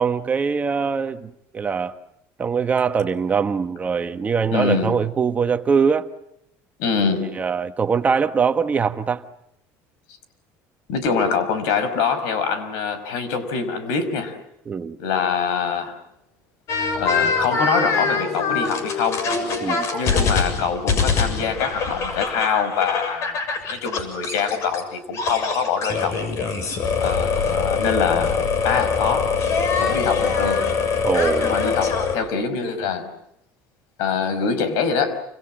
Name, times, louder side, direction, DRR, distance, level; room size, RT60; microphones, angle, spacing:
voice 1, 0.0-1.9 2.4-6.1 7.3-9.2 14.7-15.0 19.6-19.9 31.0-31.5, right 6 dB, 25° right, 9 dB, 1.3 m, -22 dB
voice 2, 4.5-4.9 6.8-7.3 10.9-14.4 15.0-16.0 16.9-19.3 19.9-23.4 23.7-26.3 27.0-28.4 28.6-29.3 29.8-30.7 31.4-33.1 34.0-35.2, left 6 dB, 80° left, 12 dB, 5.5 m, -24 dB
sound 1, 16.7-24.8 25.1-32.2, left 5 dB, 50° left, 7.1 m, -23 dB
29.0 x 27.0 x 7.5 m, 0.77 s
cardioid pair, 135°, 6 cm